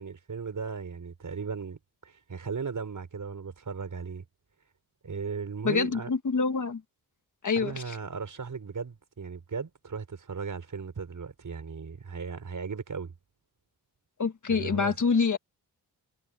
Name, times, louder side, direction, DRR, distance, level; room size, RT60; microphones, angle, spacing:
voice 1, 0.0-4.2 5.0-6.1 7.5-13.1 14.5-14.9, right 5 dB, 55° right, 5.9 m, -37 dB
voice 2, 5.6-6.8 7.4-8.0 14.2-15.4, left 5 dB, 50° left, 1.6 m, -26 dB
wide cardioid pair, 180°, 38 cm